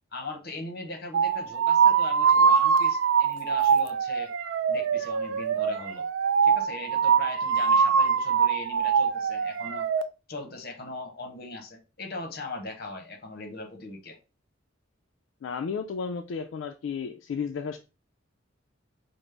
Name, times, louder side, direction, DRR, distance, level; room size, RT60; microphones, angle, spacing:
voice 1, 0.1-4.3 4.7-6.0 6.4-9.9 10.3-14.2, left 2 dB, 50° left, 0.8 m, -39 dB
sound 1, 1.1-10.0, right 6 dB, 70° right, 0.3 m, -23 dB
voice 2, 15.4-17.8, left 6 dB, 70° left, 0.3 m, -33 dB
5.0 x 2.0 x 3.3 m
head